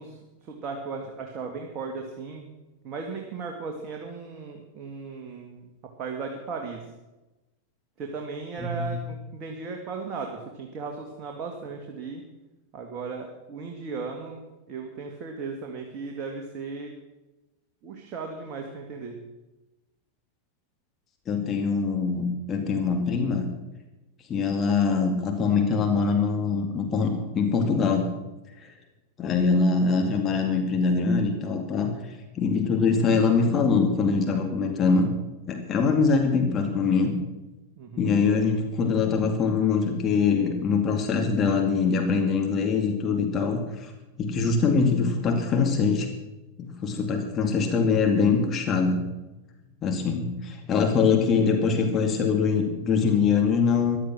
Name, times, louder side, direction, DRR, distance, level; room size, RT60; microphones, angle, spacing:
voice 1, 0.0-2.5 2.8-5.7 6.0-6.8 8.0-12.2 12.7-14.4 14.7-16.9 17.8-19.2 37.8-38.1, right 4 dB, 35° right, 2 dB, 2.0 m, -36 dB
voice 2, 8.6-8.9 21.3-23.5 24.3-28.1 28.6-28.7 29.2-31.9 32.3-35.1 35.5-37.2 38.0-43.9 44.2-46.1 46.6-49.0 49.8-54.0, left 5 dB, 25° left, 3 dB, 2.3 m, -23 dB
15.0 x 12.0 x 6.2 m, 1.0 s
figure-of-eight pair, 90°, 0 cm